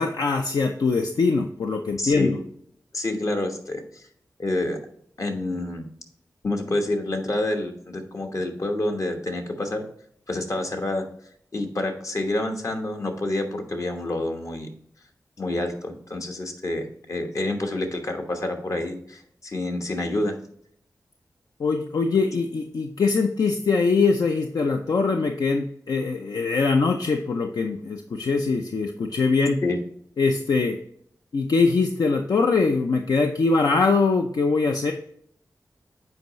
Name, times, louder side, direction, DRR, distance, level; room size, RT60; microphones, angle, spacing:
voice 1, 0.0-2.4 21.6-29.6 30.2-30.8 31.3-34.9, left 4 dB, 75° left, 4 dB, 0.5 m, -22 dB
voice 2, 2.0-2.4 2.9-4.0 4.4-4.8 5.2-5.9 6.4-9.8 10.3-11.1 11.5-14.7 15.4-20.4 29.6-29.8, left 2 dB, 55° left, 4 dB, 1.1 m, -28 dB
7.8 x 4.7 x 3.1 m, 0.67 s
wide cardioid pair, 65°, 7 cm